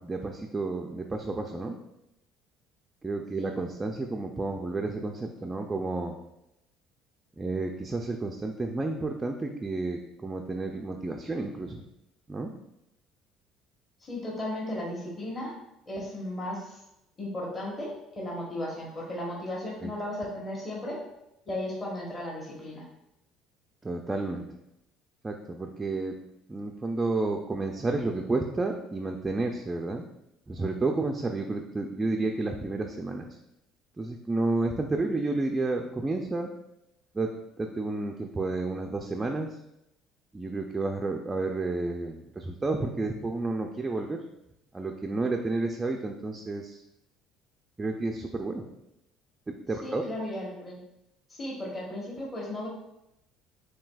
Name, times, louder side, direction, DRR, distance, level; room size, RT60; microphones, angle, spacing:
voice 1, 0.0-1.7 3.0-6.2 7.4-11.8 12.3-12.5 19.8-19.9 23.8-24.4 25.2-26.1 26.5-30.0 30.5-33.3 34.0-36.5 37.1-37.3 37.6-39.5 40.3-44.2 44.7-46.8 47.8-48.6 49.5-50.0, right 2 dB, 15° right, 2 dB, 0.3 m, -31 dB
voice 2, 14.0-15.5 15.9-16.8 17.2-17.9 18.2-21.0 21.5-22.8 49.8-50.8 51.3-52.7, left 1 dB, 25° left, -4 dB, 1.0 m, -35 dB
7.1 x 2.7 x 2.3 m, 0.86 s
cardioid pair, 130°, 0 cm